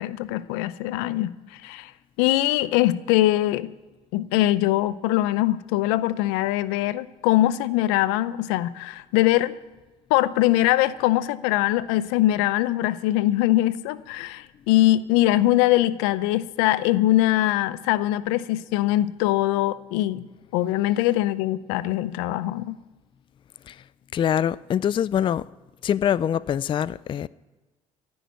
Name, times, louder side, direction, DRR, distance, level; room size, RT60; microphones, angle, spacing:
voice 1, 0.0-1.9 2.2-3.7 4.1-9.5 10.1-20.2 20.5-22.8, left 15 dB, 85° left, 0.6 m, -22 dB
voice 2, 24.1-25.5 25.8-27.3, left 9 dB, 35° left, 0.3 m, -24 dB
15.0 x 6.4 x 9.3 m
supercardioid pair, 80°, 15 cm